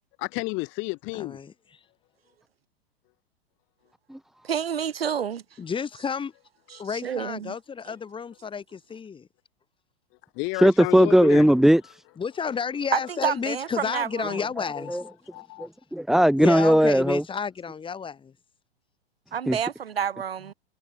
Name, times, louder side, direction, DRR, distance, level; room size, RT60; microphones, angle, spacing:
voice 1, 0.2-1.4 10.3-11.4 14.7-15.0 15.3-15.7, left 27 dB, 40° left, 3.1 m, -31 dB
voice 2, 1.1-1.5 5.6-6.3 6.8-9.3 12.2-15.0 16.4-18.3, left 6 dB, 15° left, 6.4 m, -31 dB
voice 3, 4.5-5.4 6.9-7.5 7.9-8.0 12.9-14.4 19.3-20.5, right 8 dB, 70° right, 1.3 m, -29 dB
voice 4, 10.6-12.0 14.9-15.0 15.6-17.2 19.5-19.6, equal, ahead, 1.6 m, -18 dB
figure-of-eight pair, 100°, 31 cm